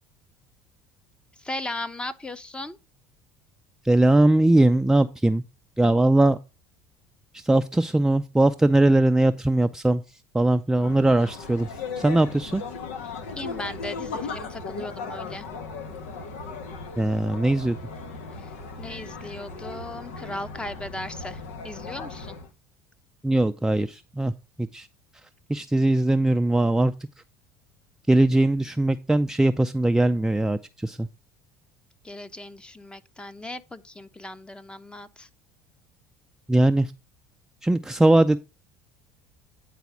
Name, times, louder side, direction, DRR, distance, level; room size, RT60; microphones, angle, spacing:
voice 1, 1.3-2.8 13.0-15.5 18.3-22.4 32.0-35.3, left 1 dB, 15° left, 0.8 m, -37 dB
voice 2, 3.8-5.4 5.8-6.4 7.3-10.0 10.3-12.6 17.0-17.8 23.2-24.3 24.6-24.9 25.5-26.9 28.1-31.1 36.5-36.9 37.6-38.4, right 2 dB, 5° right, 0.4 m, -20 dB
sound 1, 10.7-22.5, left 4 dB, 85° left, 1.3 m, -37 dB
9.4 x 4.1 x 5.9 m
supercardioid pair, 85°, 7 cm